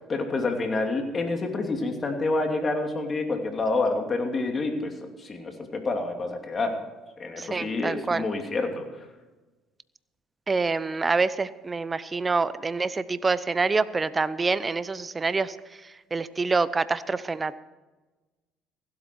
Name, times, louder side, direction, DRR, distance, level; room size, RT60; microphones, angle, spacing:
voice 1, 0.1-6.8 7.2-9.0, left 3 dB, 35° left, 4 dB, 2.8 m, -28 dB
voice 2, 7.4-8.2 10.5-15.5 16.1-17.5, right 4 dB, 25° right, 16 dB, 0.7 m, -26 dB
16.0 x 12.5 x 4.7 m, 1.2 s
hypercardioid pair, 70°, 0 cm